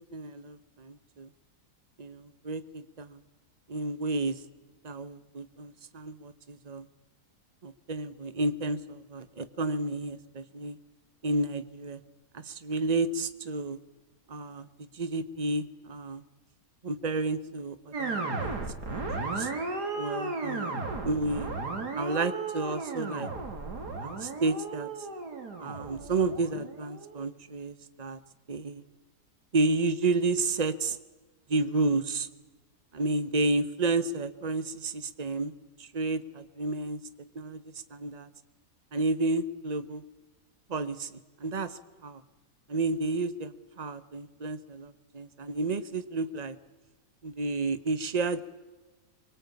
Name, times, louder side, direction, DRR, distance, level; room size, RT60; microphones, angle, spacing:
voice 1, 0.1-1.3 2.0-3.2 3.7-4.4 4.8-6.9 7.6-10.8 11.2-12.0 12.3-13.8 14.3-14.7 14.9-16.2 16.8-18.6 18.9-19.5 20.0-20.7 21.0-21.5 21.9-23.3 24.0-24.9 25.6-28.2 28.5-28.8 29.5-31.0 31.5-32.3 32.9-35.5 35.8-37.0 37.3-37.6 37.9-38.3 38.9-40.0 40.7-41.1 41.4-42.2 42.7-43.5 43.8-46.6 47.2-48.4, right 3 dB, 30° right, 13 dB, 1.1 m, -31 dB
sound 1, 17.9-27.2, right 3 dB, 80° right, 3.5 m, -35 dB
24.5 x 23.5 x 8.5 m, 1.2 s
omnidirectional pair, 1.7 m